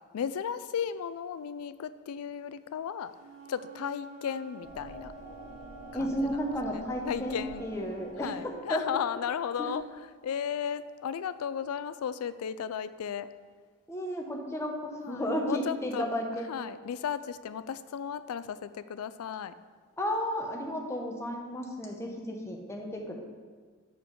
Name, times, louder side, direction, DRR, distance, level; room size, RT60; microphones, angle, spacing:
voice 1, 0.1-3.1 3.5-5.1 6.0-6.4 6.7-7.7 8.2-9.8 10.2-13.3 15.0-16.1 16.5-19.5, left 8 dB, 80° left, 14 dB, 0.3 m, -35 dB
Wind instrument woodwind instrument, 3.1-8.1, right 8 dB, 80° right, 1.6 m, -51 dB
sound 1, 4.6-11.3, left 1 dB, 10° right, 2.2 m, -48 dB
voice 2, 5.9-8.8 9.6-9.7 13.9-16.5 20.0-23.2, equal, 10° left, 0 dB, 0.8 m, -33 dB
6.6 x 5.8 x 5.2 m, 1.5 s
head